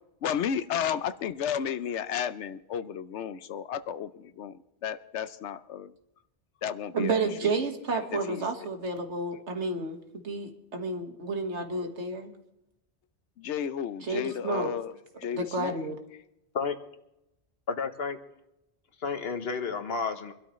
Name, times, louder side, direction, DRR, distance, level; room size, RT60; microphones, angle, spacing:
voice 1, 0.2-5.9 6.6-7.3 8.1-8.5 13.4-15.8, left 8 dB, 80° left, 1.0 m, -33 dB
voice 2, 6.9-12.3 14.0-14.7 15.3-16.0, right 3 dB, 85° right, 1.9 m, -31 dB
voice 3, 17.7-18.2 19.0-20.3, left 5 dB, 60° left, 1.3 m, -31 dB
24.5 x 12.5 x 3.1 m
omnidirectional pair, 1.2 m